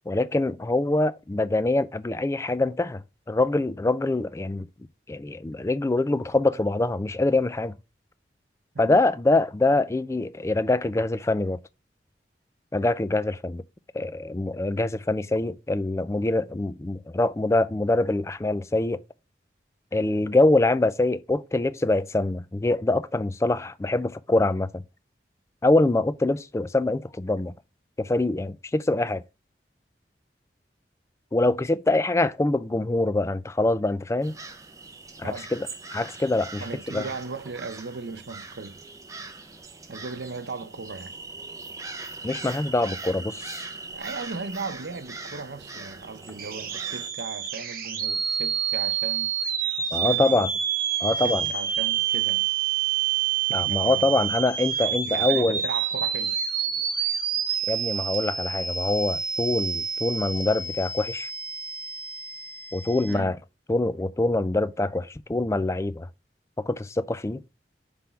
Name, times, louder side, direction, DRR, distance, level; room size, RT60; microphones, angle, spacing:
voice 1, 0.1-3.0 3.3-4.7 5.1-7.8 8.8-11.6 12.7-13.6 13.9-19.0 19.9-24.8 25.6-27.5 28.0-29.2 31.3-34.3 35.2-37.0 42.2-43.7 49.9-50.5 51.0-51.5 53.5-55.6 57.7-61.3 62.7-63.4 63.7-66.1 66.6-67.4, left 2 dB, 15° left, 0.3 m, -24 dB
sound 1, 34.2-47.1, right 3 dB, 20° right, 0.7 m, -41 dB
voice 2, 36.6-38.8 39.9-41.1 43.9-49.3 49.7-50.5 51.2-52.5 53.7-54.1 55.0-56.4 63.1-63.4, right 4 dB, 85° right, 0.7 m, -37 dB
sound 2, 46.4-63.1, right 8 dB, 55° right, 1.0 m, -28 dB
5.9 x 3.5 x 5.3 m
head